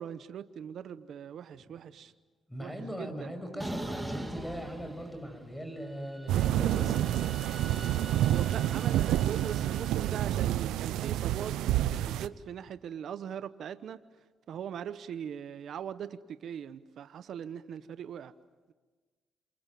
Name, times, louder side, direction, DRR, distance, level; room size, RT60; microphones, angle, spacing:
voice 1, 0.0-2.1 2.6-2.7 8.3-11.5 11.9-14.0 14.5-16.2 16.4-18.3, right 8 dB, 65° right, 12 dB, 1.0 m, -40 dB
voice 2, 2.5-7.1, equal, 5° left, 7 dB, 6.7 m, -40 dB
sound 1, 3.6-5.6 5.9-10.2, right 1 dB, 10° right, 2.8 m, -43 dB
sound 2, 6.3-12.3, right 13 dB, 90° right, 0.8 m, -28 dB
28.5 x 27.5 x 7.6 m, 1.4 s
cardioid pair, 90°, 0 cm